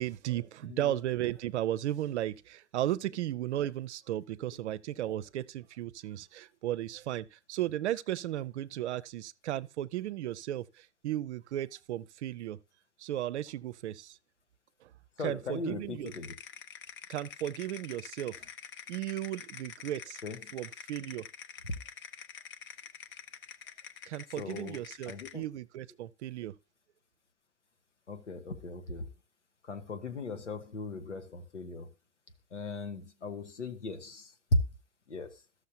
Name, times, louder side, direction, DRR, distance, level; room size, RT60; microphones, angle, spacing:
voice 1, 0.0-12.6 13.0-14.2 14.8-14.9 15.2-16.1 17.1-18.4 18.9-20.2 20.5-21.3 24.1-26.5, right 13 dB, 75° right, 0.6 m, -35 dB
voice 2, 0.7-1.0 15.2-16.3 20.2-20.6 21.6-21.8 24.4-25.4 28.1-29.1 29.6-31.9 32.5-34.6 35.1-35.4, left 2 dB, 90° left, 1.3 m, -37 dB
sound 1, 16.1-25.4, left 8 dB, 35° left, 0.9 m, -47 dB
14.0 x 6.4 x 2.8 m
figure-of-eight pair, 85°, 35 cm